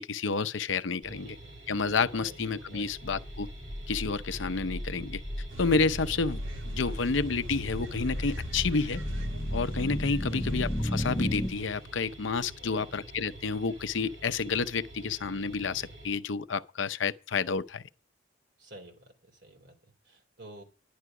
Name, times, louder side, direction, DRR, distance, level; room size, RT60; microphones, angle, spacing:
voice 1, 0.0-1.4 1.7-3.5 3.9-5.2 5.6-9.0 9.5-17.8, left 4 dB, 75° left, 0.7 m, -30 dB
voice 2, 1.0-1.6 2.1-2.4 2.7-3.0 6.0-6.2 10.3-10.6 12.6-12.9 18.6-20.6, right 1 dB, 55° right, 3.2 m, -50 dB
sound 1, 1.0-16.2, right 1 dB, 70° right, 6.0 m, -48 dB
sound 2, 3.0-11.5, equal, 10° left, 1.1 m, -34 dB
sound 3, 5.5-12.3 14.9-15.0, right 2 dB, 85° right, 1.6 m, -44 dB
11.0 x 10.5 x 4.8 m
head